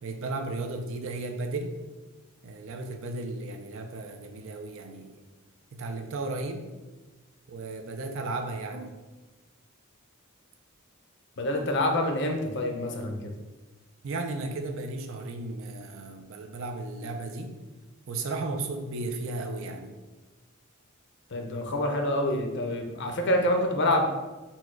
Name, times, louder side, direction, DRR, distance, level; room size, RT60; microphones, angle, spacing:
voice 1, 0.0-1.8 2.4-5.2 5.7-6.7 7.5-9.0 14.0-17.6 18.1-19.9, right 2 dB, 60° right, 5 dB, 0.5 m, -34 dB
voice 2, 11.4-13.3 21.3-24.0, left 1 dB, 55° left, 3 dB, 0.6 m, -27 dB
4.3 x 2.3 x 4.4 m, 1.2 s
head